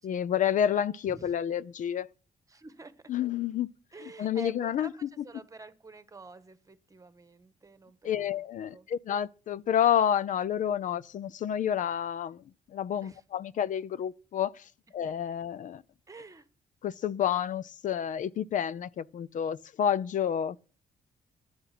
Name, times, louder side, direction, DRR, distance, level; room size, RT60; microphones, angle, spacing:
voice 1, 0.0-2.1 3.1-3.7 4.0-4.9 8.0-15.8 16.8-20.6, left 9 dB, 60° left, 0.5 m, -29 dB
voice 2, 2.5-3.0 3.9-8.4 8.7-8.9 13.0-13.2 16.1-16.5, right 3 dB, 20° right, 1.3 m, -49 dB
11.5 x 9.6 x 6.0 m
cardioid pair, 90°, 15 cm